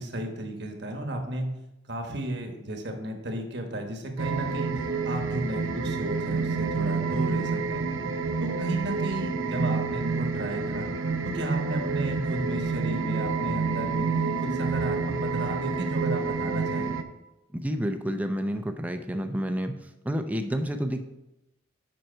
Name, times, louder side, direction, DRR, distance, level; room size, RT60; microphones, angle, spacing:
voice 1, 0.0-1.5 1.9-4.7 5.0-7.8 8.4-10.9 11.2-14.1 14.4-16.9, right 1 dB, 55° right, 3 dB, 1.2 m, -34 dB
sound 1, 4.2-17.0, right 4 dB, 90° right, 0.7 m, -28 dB
voice 2, 17.5-19.8 20.0-21.0, equal, 10° right, 6 dB, 0.5 m, -29 dB
7.8 x 5.9 x 4.5 m, 0.96 s
head